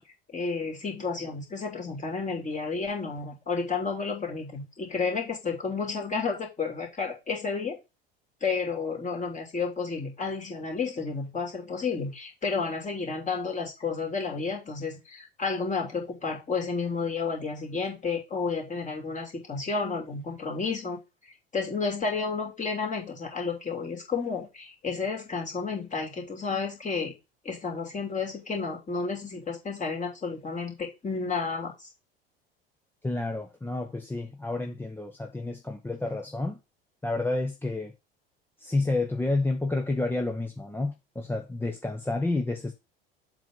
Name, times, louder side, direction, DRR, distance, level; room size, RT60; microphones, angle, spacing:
voice 1, 0.3-7.8 8.4-21.0 21.5-27.1 27.4-31.9, left 4 dB, 25° left, 2.9 m, -31 dB
voice 2, 33.0-36.6 37.0-37.9 38.6-42.7, left 2 dB, 5° left, 0.9 m, -30 dB
7.4 x 3.7 x 5.3 m
figure-of-eight pair, 70°, 30 cm